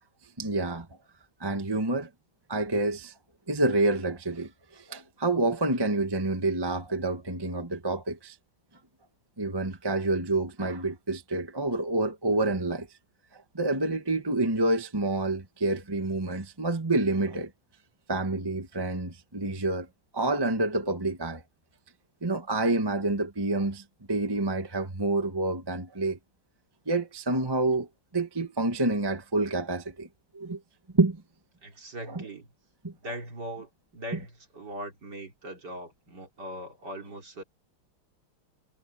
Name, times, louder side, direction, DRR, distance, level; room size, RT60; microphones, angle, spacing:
voice 1, 0.4-0.9 1.4-2.1 2.5-3.1 3.5-8.4 9.4-12.9 13.3-17.5 18.1-19.9 20.1-21.4 22.2-26.2 26.9-27.9 28.1-30.1 30.3-30.6 30.9-31.2 32.1-32.2 32.8-32.9, right 2 dB, 15° right, 1.3 m, -28 dB
voice 2, 31.6-32.5 33.0-37.4, equal, 50° right, 4.3 m, -40 dB
omnidirectional pair, 2.4 m